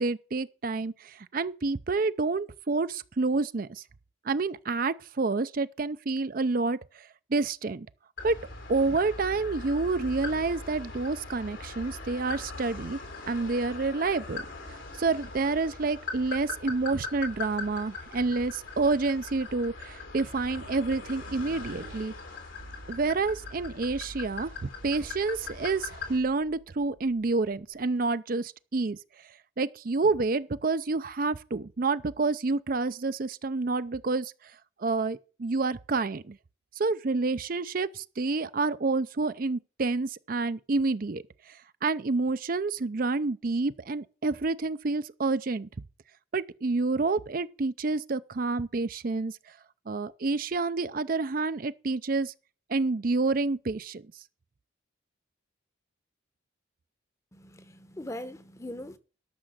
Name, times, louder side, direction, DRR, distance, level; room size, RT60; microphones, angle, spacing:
voice 1, 0.0-3.8 4.2-7.9 8.2-8.4 8.7-13.0 13.3-22.1 22.9-29.0 29.6-34.3 34.8-36.4 36.8-41.2 41.8-45.7 46.3-49.3 49.9-52.3 52.7-54.0, right 3 dB, 45° right, 0.5 m, -28 dB
sound 1, 8.2-26.2, left 4 dB, 85° left, 3.6 m, -41 dB
sound 2, 19.9-27.8, right 1 dB, 85° right, 1.4 m, -50 dB
voice 2, 57.3-59.0, left 1 dB, 15° left, 0.9 m, -41 dB
13.0 x 6.2 x 7.8 m
head